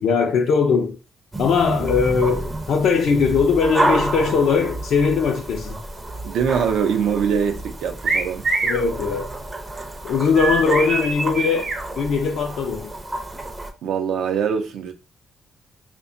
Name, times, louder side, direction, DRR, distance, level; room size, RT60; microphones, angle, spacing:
voice 1, 0.0-1.0 1.4-5.8 8.7-9.3 10.0-12.9, left 5 dB, 70° left, 0.3 m, -20 dB
sound 1, 1.3-13.7, right 1 dB, 20° right, 0.5 m, -30 dB
voice 2, 6.2-8.5 13.8-14.9, right 7 dB, 80° right, 0.5 m, -23 dB
sound 2, 8.0-8.8 10.4-11.8, right 3 dB, 55° right, 0.8 m, -23 dB
2.8 x 2.2 x 2.5 m
cardioid pair, 90°, 0 cm